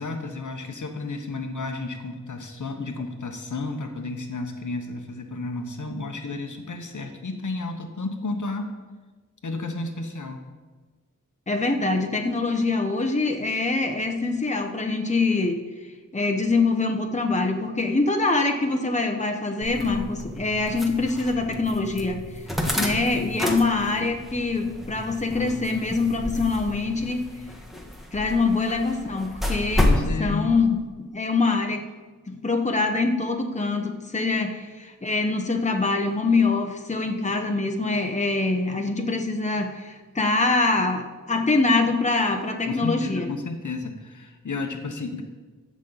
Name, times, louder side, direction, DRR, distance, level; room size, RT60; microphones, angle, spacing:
voice 1, 0.0-8.8 9.4-10.5 22.6-23.5 29.8-30.5 42.7-45.2, left 3 dB, 70° left, 5 dB, 1.1 m, -32 dB
voice 2, 11.5-15.6 16.1-22.2 22.8-27.3 28.1-29.9 30.2-31.8 32.3-43.3, left 3 dB, 20° left, 3 dB, 1.0 m, -24 dB
sound 1, 19.6-30.1, left 1 dB, ahead, 1.4 m, -30 dB
15.5 x 6.3 x 4.1 m, 1.3 s
wide cardioid pair, 85°, 32 cm